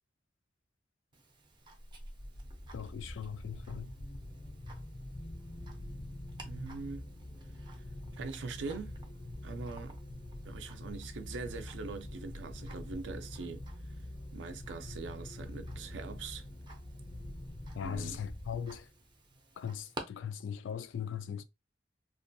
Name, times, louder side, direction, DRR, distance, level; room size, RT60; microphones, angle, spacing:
Tick-tock, 1.1-20.0, right 2 dB, 25° right, 0.5 m, -55 dB
sound 1, 1.7-19.0, left 1 dB, 25° left, 0.4 m, -45 dB
voice 1, 2.7-3.9 17.7-18.9 19.6-21.4, left 8 dB, 90° left, 0.3 m, -39 dB
voice 2, 6.4-7.1 8.1-9.0 9.4-10.0 10.4-13.7 14.3-16.4 17.8-18.2, right 4 dB, 75° right, 0.4 m, -42 dB
2.5 x 2.2 x 2.5 m
head